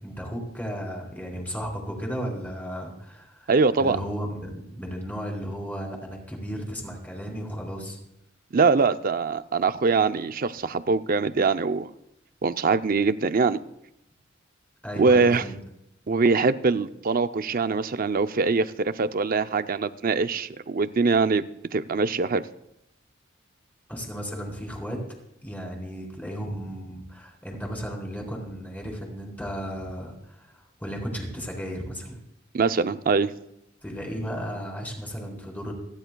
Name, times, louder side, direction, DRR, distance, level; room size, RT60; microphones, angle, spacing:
voice 1, 0.0-3.5 3.8-8.0 14.8-15.6 23.9-25.0 25.4-32.2 33.8-35.7, equal, 10° left, 0 dB, 3.5 m, -34 dB
voice 2, 3.5-4.0 8.5-11.9 12.4-13.6 15.0-15.4 16.1-21.4 21.7-22.4 32.5-33.3, right 4 dB, 50° right, 11 dB, 0.5 m, -23 dB
28.5 x 10.5 x 2.3 m, 0.84 s
head